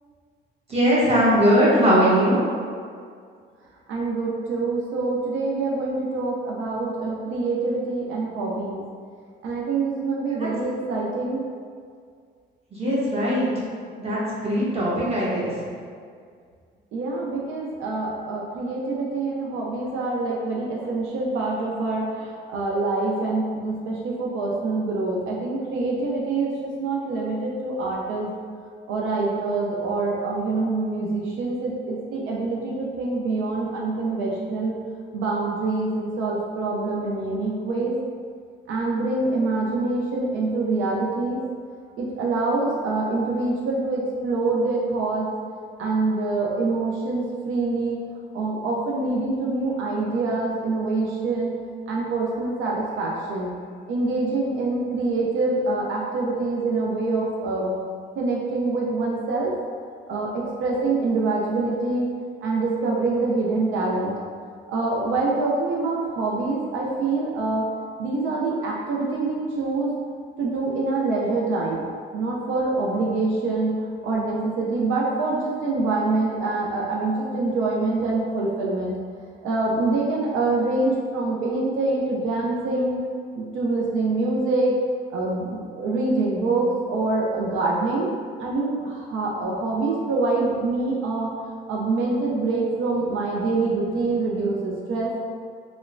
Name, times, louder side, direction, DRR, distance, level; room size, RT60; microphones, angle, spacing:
voice 1, 0.7-2.4 12.7-13.5 14.0-15.5, equal, 30° right, -7 dB, 0.9 m, -20 dB
voice 2, 3.9-8.8 9.4-11.4 16.9-28.3 28.9-34.8 35.1-38.0 38.7-41.4 42.0-45.3 45.8-48.0 48.3-51.6 51.9-53.5 53.9-57.7 58.2-59.5 60.1-62.1 62.4-64.1 64.7-67.7 68.0-69.9 70.4-71.8 72.1-73.7 74.0-79.0 79.4-83.0 83.4-84.8 85.1-88.1 88.4-91.3 91.7-95.2, right 3 dB, 80° right, -3 dB, 0.4 m, -25 dB
2.9 x 2.1 x 2.4 m, 2.1 s
cardioid pair, 90°, 20 cm